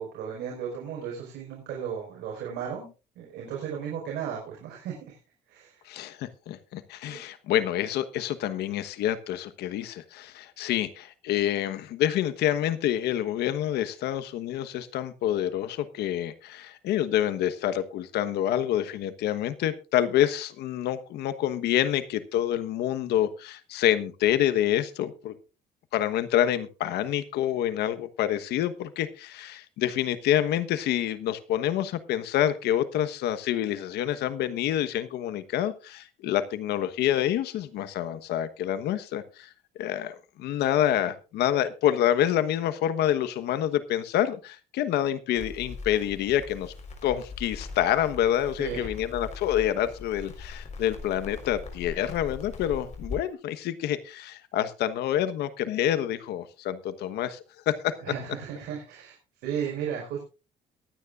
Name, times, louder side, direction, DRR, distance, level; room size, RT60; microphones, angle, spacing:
voice 1, 0.0-2.9 3.1-5.2 5.5-5.8 7.1-7.2 48.6-48.9 58.0-59.2 59.4-60.3, right 8 dB, 80° right, -2 dB, 5.0 m, -35 dB
voice 2, 5.9-25.3 25.9-39.5 39.8-46.7 47.0-57.4 57.7-58.0, left 11 dB, 80° left, 12 dB, 1.2 m, -27 dB
Crackle, 45.3-53.2, left 3 dB, 45° left, 4.3 m, -41 dB
22.5 x 9.5 x 2.5 m, 0.32 s
cardioid pair, 110°, 17 cm